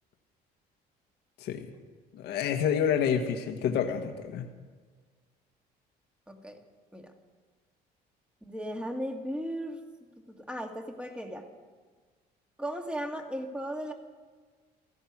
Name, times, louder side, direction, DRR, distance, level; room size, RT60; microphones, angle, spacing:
voice 1, 2.2-4.5, left 8 dB, 80° left, 5 dB, 1.4 m, -28 dB
voice 2, 6.3-6.6 6.9-7.1 8.4-9.8 10.3-11.5 12.6-13.9, equal, 5° right, 4 dB, 1.9 m, -36 dB
16.0 x 14.0 x 6.1 m, 1.5 s
cardioid pair, 110°, 17 cm